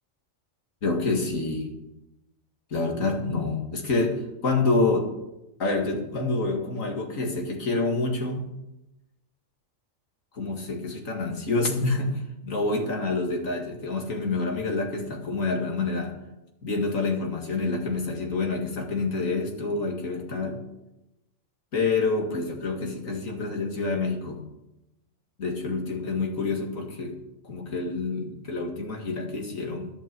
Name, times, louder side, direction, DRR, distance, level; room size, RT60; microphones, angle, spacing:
voice 1, 0.8-1.7 2.7-5.1 5.6-8.5 10.3-16.2 16.6-20.6 21.7-24.4 25.4-27.2 27.4-29.9, left 3 dB, 85° left, 1 dB, 2.4 m, -27 dB
11.5 x 8.7 x 6.9 m, 0.92 s
omnidirectional pair, 1.3 m